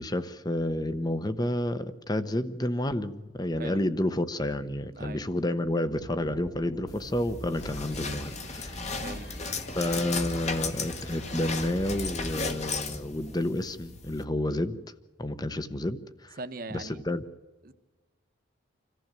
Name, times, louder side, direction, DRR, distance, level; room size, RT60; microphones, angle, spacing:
voice 1, 0.0-8.8 9.7-14.8 15.2-16.4 16.7-17.2, left 1 dB, 20° left, 12 dB, 0.9 m, -30 dB
sound 1, 6.0-13.4, equal, 20° right, 1.1 m, -46 dB
sound 2, 6.9-14.2, left 4 dB, 35° left, 1.4 m, -36 dB
sound 3, 7.5-12.5, left 1 dB, 70° left, 5.1 m, -42 dB
voice 2, 9.0-9.3 16.4-17.0 17.6-17.7, right 2 dB, 45° right, 9 dB, 1.1 m, -40 dB
26.5 x 15.0 x 7.6 m, 1.3 s
head